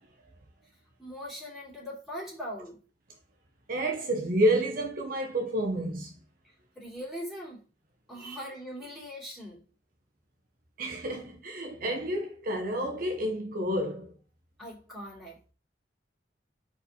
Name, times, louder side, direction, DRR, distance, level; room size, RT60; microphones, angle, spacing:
voice 1, 1.0-2.8 6.4-7.6 8.1-9.6 14.6-15.4, equal, ahead, 3.2 m, -41 dB
voice 2, 3.7-6.1 8.2-8.4 10.8-14.1, right 1 dB, 50° right, 1.0 m, -29 dB
4.9 x 4.4 x 5.5 m
head